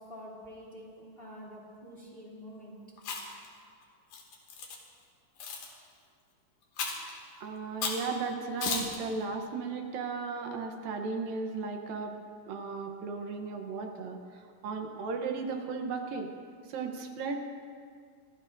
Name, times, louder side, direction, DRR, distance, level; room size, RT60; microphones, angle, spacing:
voice 1, 0.1-2.8, equal, 15° left, -4 dB, 2.7 m, -47 dB
Chewing mastication, 3.0-3.5 4.1-4.8 5.4-5.7 6.8-7.1 7.8-8.1 8.6-9.0, left 4 dB, 70° left, 3.5 m, -34 dB
voice 2, 7.4-12.2 12.5-16.3 16.7-17.5, right 4 dB, 75° right, 4 dB, 2.7 m, -35 dB
25.0 x 16.5 x 2.6 m, 2.1 s
omnidirectional pair, 4.1 m